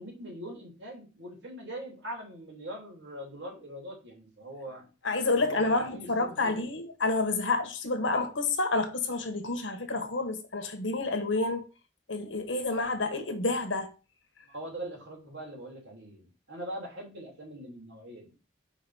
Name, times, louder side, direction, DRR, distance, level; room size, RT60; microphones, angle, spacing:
voice 1, 0.0-4.9 5.4-6.7 14.4-18.3, right 1 dB, 65° right, 2.9 m, -42 dB
voice 2, 5.0-11.6 12.1-13.9, left 3 dB, 80° left, 1.3 m, -29 dB
5.4 x 4.7 x 5.5 m
head